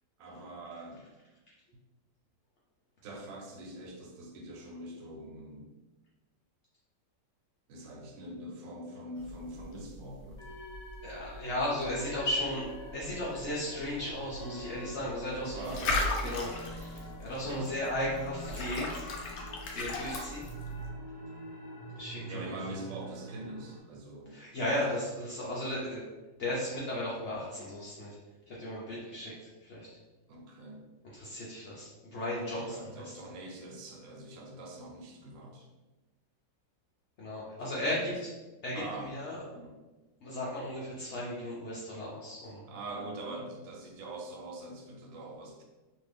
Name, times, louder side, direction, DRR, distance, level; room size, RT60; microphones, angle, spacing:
voice 1, 0.2-1.1 3.0-5.7 7.7-10.4 15.3-16.0 17.4-17.7 22.3-24.4 30.3-30.8 32.6-35.7 37.8-38.2 38.7-39.2 39.5-39.8 42.6-45.6, right 1 dB, 85° right, 1 dB, 1.3 m, -43 dB
sound 1, 9.2-20.9, left 2 dB, 70° left, 1.0 m, -38 dB
sound 2, 10.4-23.8, right 1 dB, 20° left, 0.8 m, -46 dB
voice 2, 11.0-12.6 12.9-15.7 16.2-19.1 19.7-20.4 21.9-22.6 24.3-26.0 26.4-28.2 28.5-29.9 31.1-33.1 37.2-38.3 38.6-39.4 40.2-42.6, left 1 dB, 90° left, -6 dB, 0.6 m, -35 dB
2.8 x 2.6 x 3.2 m, 1.2 s
omnidirectional pair, 2.0 m